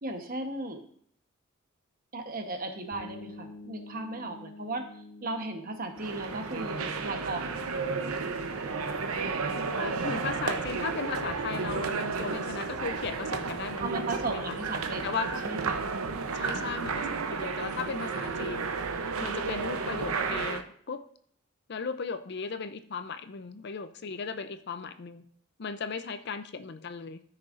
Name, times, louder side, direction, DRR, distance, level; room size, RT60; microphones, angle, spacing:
voice 1, 0.0-0.8 2.1-4.9 5.2-7.6 13.8-15.9, right 2 dB, 40° right, 5 dB, 1.0 m, -36 dB
sound 1, 2.9-12.5, left 2 dB, 70° left, 1.3 m, -50 dB
sound 2, 6.0-20.6, right 4 dB, 85° right, 0.7 m, -32 dB
voice 2, 9.8-14.5 15.0-15.4 16.3-18.7 19.2-21.0 21.7-25.3 25.6-27.2, left 5 dB, 50° left, 11 dB, 0.5 m, -36 dB
13.5 x 6.3 x 2.5 m, 0.62 s
head